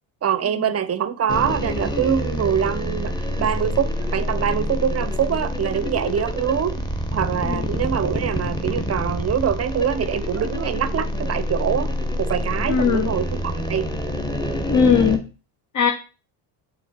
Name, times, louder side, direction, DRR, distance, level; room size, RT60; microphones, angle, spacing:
voice 1, 0.2-6.9 7.1-11.9 12.2-13.9, right 8 dB, 30° right, 0.7 m, -24 dB
sound 1, 1.3-15.2, equal, 10° left, 1.4 m, -27 dB
voice 2, 12.7-13.1 14.7-15.2 15.7-15.9, left 6 dB, 35° left, 0.9 m, -18 dB
7.2 x 4.1 x 4.4 m
hypercardioid pair, 70°, 50 cm